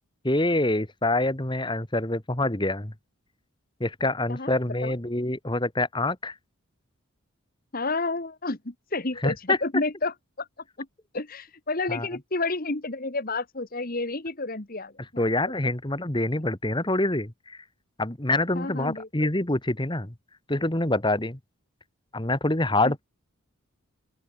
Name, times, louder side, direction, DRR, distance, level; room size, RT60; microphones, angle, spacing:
voice 1, 0.2-2.9 3.8-6.3 9.2-9.6 11.9-12.1 15.2-17.6 18.0-20.1 20.5-21.4 22.1-23.0, left 2 dB, 20° left, 1.7 m, -26 dB
voice 2, 7.7-10.5 10.8-10.9 11.1-15.3 18.5-19.3 22.8-22.9, left 3 dB, 40° left, 1.5 m, -30 dB
open air
head